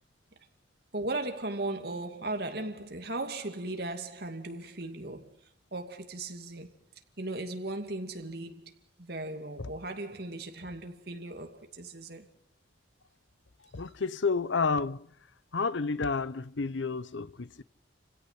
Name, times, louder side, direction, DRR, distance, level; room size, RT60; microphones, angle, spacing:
voice 1, 0.9-5.3 5.7-6.7 7.2-8.7 9.0-12.3, right 2 dB, 55° right, 2.5 m, -37 dB
voice 2, 13.7-15.1 15.5-17.6, left 4 dB, 80° left, 0.8 m, -30 dB
29.5 x 17.0 x 5.8 m
head